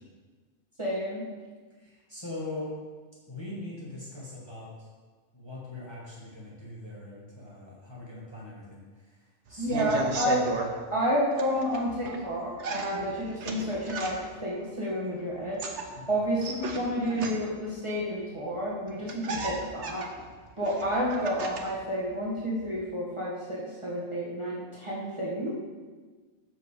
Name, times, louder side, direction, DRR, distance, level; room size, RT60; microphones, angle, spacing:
voice 1, 0.8-1.2 9.6-10.5 10.9-15.6 16.1-20.1 20.6-25.5, equal, 25° right, -6 dB, 1.7 m, -30 dB
voice 2, 1.7-2.7 3.3-4.9 5.3-10.0 15.9-16.2, left 2 dB, 20° left, -7 dB, 2.1 m, -41 dB
sound 1, 9.5-10.7 11.3-12.2 12.6-14.4 15.4-17.7 18.6-18.7 18.9-21.8 22.1-22.8, right 4 dB, 80° right, 1.3 m, -36 dB
8.0 x 6.0 x 6.7 m, 1.4 s
omnidirectional pair, 1.2 m